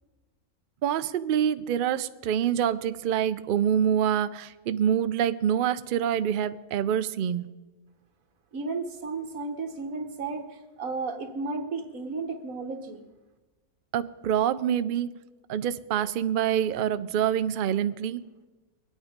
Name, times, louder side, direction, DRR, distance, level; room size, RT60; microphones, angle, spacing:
voice 1, 0.8-7.5 13.9-15.1 15.5-18.2, right 9 dB, 85° right, 13 dB, 0.4 m, -26 dB
voice 2, 8.5-13.0, right 3 dB, 65° right, 6 dB, 1.7 m, -33 dB
22.5 x 8.9 x 5.1 m, 1.2 s
omnidirectional pair, 1.6 m